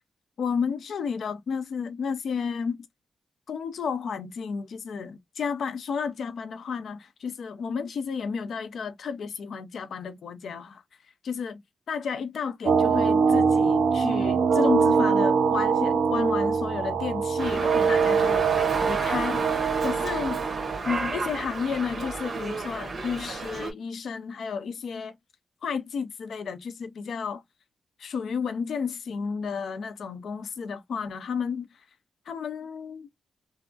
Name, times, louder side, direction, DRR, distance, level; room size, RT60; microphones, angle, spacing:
voice 1, 0.4-2.9 3.5-10.8 11.2-11.6 11.9-18.5 18.8-20.5 20.8-25.2 25.6-27.4 28.0-31.8 32.3-33.1, left 6 dB, 75° left, 0.6 m, -32 dB
sound 1, 12.7-20.8, right 5 dB, 70° right, 0.4 m, -23 dB
Dog, 17.4-23.7, right 3 dB, 50° right, 1.3 m, -32 dB
3.5 x 2.1 x 2.4 m
cardioid pair, 100°, 0 cm